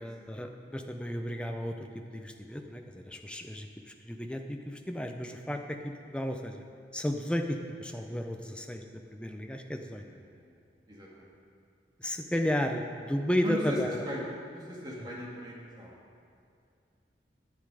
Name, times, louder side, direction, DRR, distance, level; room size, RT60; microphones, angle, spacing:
voice 1, 0.0-6.6 6.9-10.0 12.0-14.0, equal, 5° left, 4 dB, 0.6 m, -33 dB
voice 2, 9.9-10.6 10.9-11.3 13.4-14.3 14.5-16.0, equal, 25° right, -5 dB, 2.1 m, -38 dB
10.5 x 9.8 x 4.9 m, 2.4 s
head